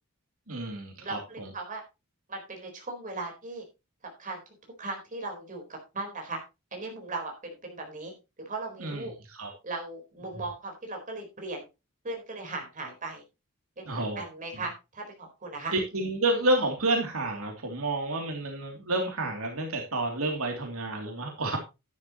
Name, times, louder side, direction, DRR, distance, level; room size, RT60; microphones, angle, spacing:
voice 1, 0.5-1.5 8.8-9.1 9.4-9.5 13.9-14.2 15.7-21.6, right 2 dB, 70° right, 2 dB, 2.8 m, -29 dB
voice 2, 1.0-1.8 2.3-3.6 4.0-4.4 4.8-6.4 6.7-8.1 8.4-9.1 9.6-11.6 12.0-13.2 13.8-15.7, right 3 dB, 35° right, 2 dB, 4.2 m, -38 dB
11.5 x 11.0 x 3.0 m, 0.27 s
head